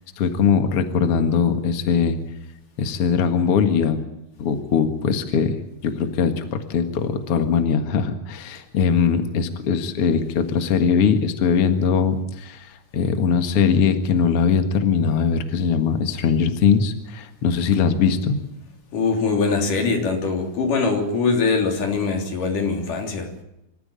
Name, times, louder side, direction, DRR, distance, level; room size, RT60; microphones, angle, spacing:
voice 1, 0.2-2.2 2.8-4.0 4.4-5.6 5.8-18.4, left 6 dB, 50° left, 7 dB, 2.4 m, -21 dB
voice 2, 18.9-23.3, left 4 dB, 90° left, 3 dB, 4.9 m, -22 dB
27.0 x 14.5 x 8.9 m, 0.90 s
omnidirectional pair, 3.6 m